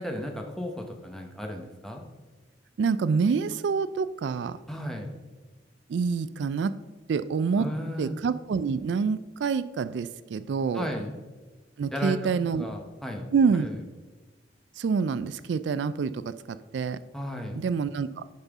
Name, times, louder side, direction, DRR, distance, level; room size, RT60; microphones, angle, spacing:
voice 1, 0.0-2.0 4.7-5.1 7.6-8.2 10.7-11.1 11.9-13.3 13.6-13.8 17.1-17.6, equal, 5° left, 2 dB, 0.9 m, -34 dB
voice 2, 2.8-4.6 5.9-6.7 7.1-7.7 8.0-10.9 11.8-12.7 13.3-13.7 14.8-16.2 16.7-17.0 17.5-18.2, right 5 dB, 70° right, 14 dB, 0.3 m, -26 dB
10.5 x 5.6 x 3.5 m, 1.2 s
head